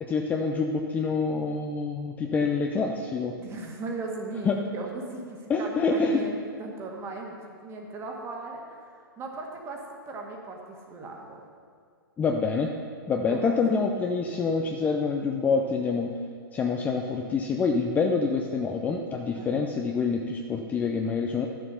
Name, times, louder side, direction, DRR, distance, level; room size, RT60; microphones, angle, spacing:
voice 1, 0.0-3.4 4.4-4.6 5.5-6.2 12.2-12.7 13.1-16.1 16.5-21.5, left 4 dB, 15° left, 2 dB, 0.5 m, -26 dB
voice 2, 3.4-11.4 13.3-13.6 19.4-19.6, right 3 dB, 20° right, 1 dB, 1.5 m, -38 dB
12.0 x 7.1 x 5.7 m, 2.1 s
figure-of-eight pair, 110°, 12 cm